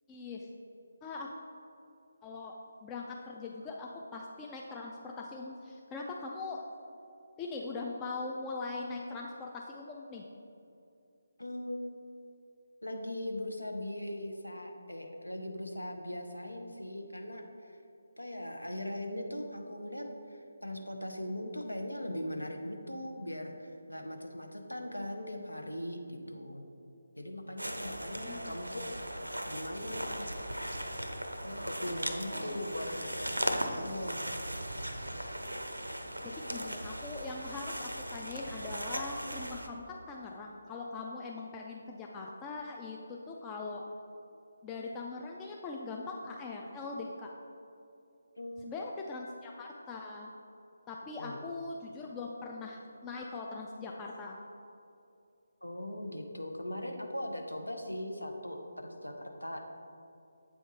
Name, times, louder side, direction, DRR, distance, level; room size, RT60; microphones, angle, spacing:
voice 1, 0.1-0.5 1.0-1.3 2.2-2.5 2.8-6.6 7.4-10.3 28.2-28.5 32.3-32.6 36.2-43.8 44.6-47.3 48.6-50.3 50.9-54.4, left 3 dB, 15° left, -1 dB, 0.3 m, -41 dB
voice 2, 11.4-12.0 12.8-17.8 18.2-26.6 27.2-28.9 29.5-30.3 31.4-34.2 48.4-48.6 51.1-51.4 55.6-59.7, left 1 dB, 85° left, 3 dB, 0.7 m, -40 dB
sound 1, 27.6-39.7, right 1 dB, 85° right, 0.6 m, -38 dB
7.7 x 3.5 x 4.0 m, 2.6 s
figure-of-eight pair, 150°, 0 cm